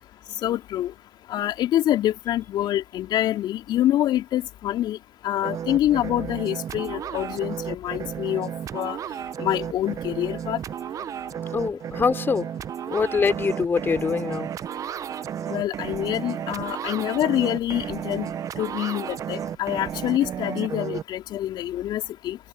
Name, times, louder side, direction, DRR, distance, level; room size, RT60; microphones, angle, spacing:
voice 1, 0.4-0.9 1.3-5.0 5.2-9.0 9.4-10.6 15.5-18.3 18.6-22.4, left 13 dB, 40° left, 3.3 m, -26 dB
sound 1, 5.4-21.0, right 9 dB, 30° right, 1.0 m, -33 dB
voice 2, 11.5-12.5 12.9-14.5, left 5 dB, 20° left, 3.8 m, -24 dB
hypercardioid pair, 95°, 12 cm